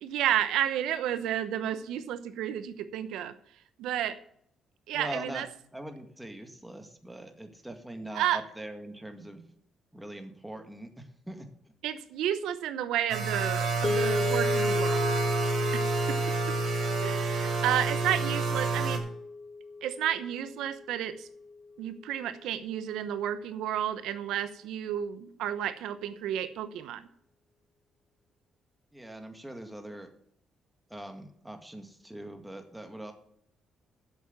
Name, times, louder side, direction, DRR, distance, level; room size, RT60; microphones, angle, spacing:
voice 1, 0.0-3.3 3.8-4.2 4.9-5.5 8.1-8.4 11.8-15.1 15.7-16.2 16.5-16.6 17.0-19.1 19.8-21.3 21.8-27.0, right 10 dB, 90° right, 12 dB, 0.9 m, -31 dB
voice 2, 4.9-5.4 5.7-9.4 9.9-11.5 28.9-30.1 30.9-33.1, right 1 dB, 5° right, 6 dB, 1.9 m, -42 dB
sound 1, 13.1-19.0, right 4 dB, 60° right, 2.6 m, -29 dB
sound 2, 13.8-22.1, left 3 dB, 30° left, 1.7 m, -34 dB
8.0 x 7.3 x 8.5 m, 0.67 s
cardioid pair, 90°, 0 cm